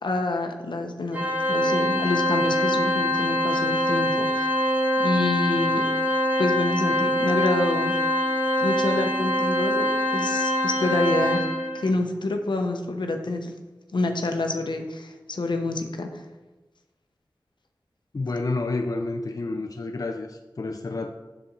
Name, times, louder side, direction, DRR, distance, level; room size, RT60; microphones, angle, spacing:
voice 1, 0.0-4.5 5.0-5.8 6.4-8.0 8.6-11.4 11.7-13.5 13.9-16.2, left 2 dB, 75° left, 5 dB, 0.8 m, -27 dB
Organ, 1.1-11.9, left 1 dB, 20° right, 1.2 m, -24 dB
voice 2, 18.1-21.1, left 3 dB, 50° left, 4 dB, 0.5 m, -29 dB
7.0 x 6.0 x 3.9 m, 1.1 s
wide cardioid pair, 45°, 8 cm